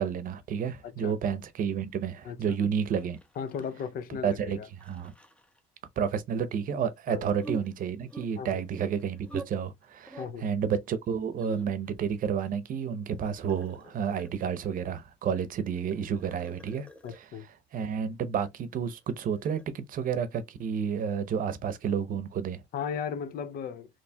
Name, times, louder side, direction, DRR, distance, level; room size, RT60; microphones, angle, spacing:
voice 1, 0.0-3.2 4.2-5.1 6.0-16.9 17.1-17.2 17.7-22.6, right 7 dB, 55° right, 0.7 m, -30 dB
voice 2, 0.8-1.2 2.2-2.6 3.4-4.7 7.1-7.2 8.4-8.6 10.2-10.5 17.0-17.5 22.7-23.9, left 7 dB, 60° left, 0.5 m, -36 dB
sound 1, 2.9-4.0 4.3-4.4 4.8-5.6 7.3-9.5 9.7-10.3 11.0-11.9 12.4-14.6 15.7-17.2 18.9-19.6, right 2 dB, 5° left, 0.7 m, -46 dB
4.3 x 3.0 x 2.2 m
cardioid pair, 110°, 17 cm